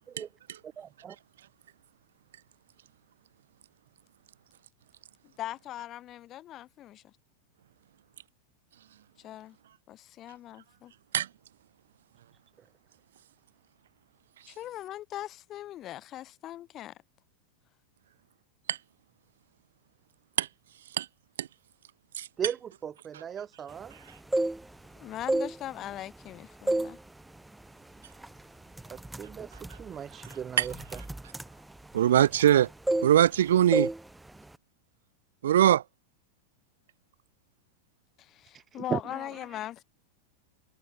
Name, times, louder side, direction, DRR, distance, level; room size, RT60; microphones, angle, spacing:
voice 1, 0.8-1.2 22.4-24.0 28.9-29.5 29.8-31.0 38.5-39.3, right 8 dB, 25° right, 0.7 m, -37 dB
voice 2, 5.2-7.1 9.2-9.6 9.9-10.9 14.5-16.9 25.0-27.0 38.2-39.8, left 13 dB, 30° left, 4.4 m, -40 dB
sound 1, 24.1-24.9 25.2-26.3 26.7-27.0 27.4-27.6 28.2-28.4 28.7-32.6 32.9-33.4 33.7-34.0 34.3-34.5, right 2 dB, 5° right, 1.1 m, -31 dB
voice 3, 31.9-32.7 33.0-33.9 35.4-35.8, right 11 dB, 60° right, 0.5 m, -21 dB
figure-of-eight pair, 90°, 0 cm